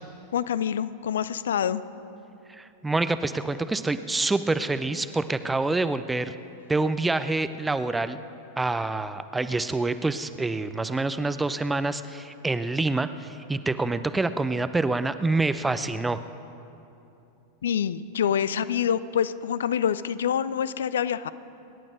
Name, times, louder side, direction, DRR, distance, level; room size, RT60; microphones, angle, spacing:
voice 1, 0.3-1.8 17.6-21.3, left 8 dB, 65° left, 16 dB, 0.5 m, -26 dB
voice 2, 2.5-6.3 6.7-8.2 8.6-16.2, right 3 dB, 10° right, 12 dB, 0.6 m, -26 dB
25.0 x 10.5 x 5.1 m, 2.8 s
figure-of-eight pair, 90°, 0 cm